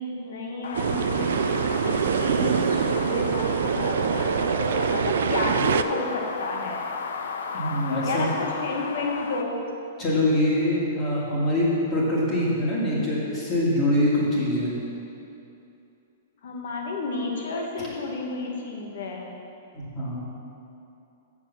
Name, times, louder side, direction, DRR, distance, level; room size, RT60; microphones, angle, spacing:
voice 1, 0.0-6.8 8.0-9.6 16.4-19.3, left 2 dB, 60° left, 0 dB, 1.6 m, -31 dB
sound 1, 0.6-9.4, left 5 dB, 90° left, 0.7 m, -34 dB
sound 2, 0.7-5.8, right 7 dB, 75° right, 0.4 m, -24 dB
voice 2, 7.5-8.3 10.0-14.7 19.7-20.2, left 1 dB, 20° left, -6 dB, 2.0 m, -24 dB
7.2 x 7.0 x 7.0 m, 2.8 s
hypercardioid pair, 175°, 0 cm